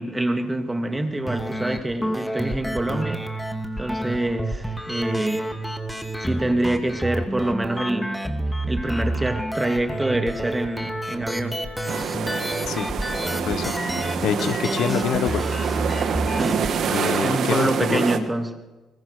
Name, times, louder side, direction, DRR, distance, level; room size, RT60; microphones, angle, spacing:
voice 1, 0.0-3.2 3.8-5.6 6.2-8.2 8.7-11.7 16.3-16.7 17.2-18.6, right 1 dB, 15° right, 5 dB, 2.5 m, -26 dB
sound 1, 1.3-17.3, right 1 dB, 5° left, 2.6 m, -29 dB
sound 2, 11.9-18.2, right 7 dB, 65° right, 1.9 m, -27 dB
voice 2, 14.2-15.4 16.9-18.0, left 9 dB, 75° left, 13 dB, 1.2 m, -25 dB
25.0 x 21.0 x 6.7 m, 1.2 s
cardioid pair, 90°, 0 cm